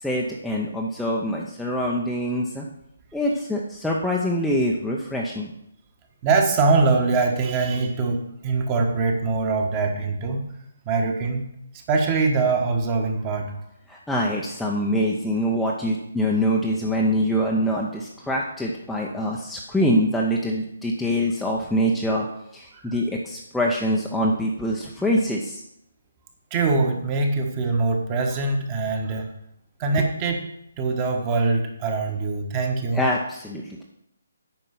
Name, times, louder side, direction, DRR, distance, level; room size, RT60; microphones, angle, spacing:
voice 1, 0.0-2.7 3.1-5.5 13.9-22.3 22.5-25.6 30.0-30.1 32.9-33.8, equal, ahead, -4 dB, 0.8 m, -24 dB
voice 2, 6.2-10.4 10.8-11.4 11.9-13.5 22.7-22.9 26.5-29.3 29.8-30.5 30.8-33.0, right 3 dB, 25° right, 3 dB, 1.5 m, -23 dB
9.1 x 5.4 x 5.9 m, 0.76 s
figure-of-eight pair, 140°, 0 cm